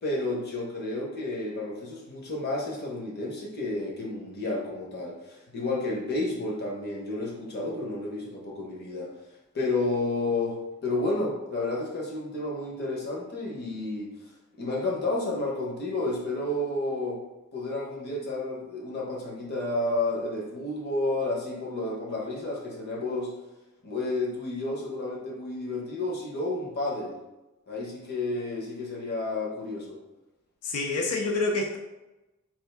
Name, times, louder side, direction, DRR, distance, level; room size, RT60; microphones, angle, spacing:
voice 1, 0.0-9.1 9.5-14.1 14.6-17.2 17.5-23.3 23.8-27.2 27.7-30.0, left 2 dB, 45° left, -2 dB, 0.9 m, -31 dB
voice 2, 30.6-31.8, left 3 dB, 90° left, 1 dB, 0.5 m, -27 dB
4.3 x 2.6 x 3.4 m, 1.0 s
head